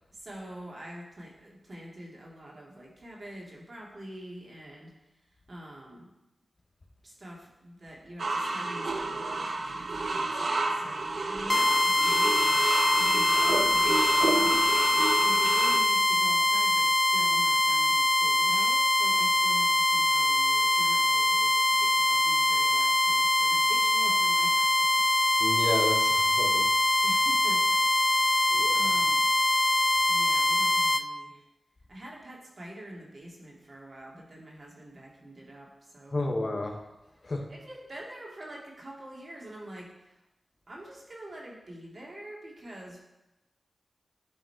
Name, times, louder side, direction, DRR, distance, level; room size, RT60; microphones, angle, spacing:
voice 1, 0.1-4.9 5.3-6.1 7.0-14.7 15.1-25.1 27.0-27.8 28.1-29.3 30.1-31.4 31.9-36.2 37.5-40.2 40.7-43.0, right 1 dB, 55° right, -3 dB, 2.2 m, -45 dB
sound 1, 8.2-15.8, right 2 dB, 75° right, 0.7 m, -30 dB
sound 2, 11.5-31.0, left 1 dB, 25° left, 0.3 m, -24 dB
voice 2, 25.4-26.7 28.5-28.9 36.1-36.7 37.2-37.5, left 2 dB, 50° left, 2 dB, 1.2 m, -31 dB
10.5 x 3.9 x 4.6 m, 0.98 s
cardioid pair, 55°, 0 cm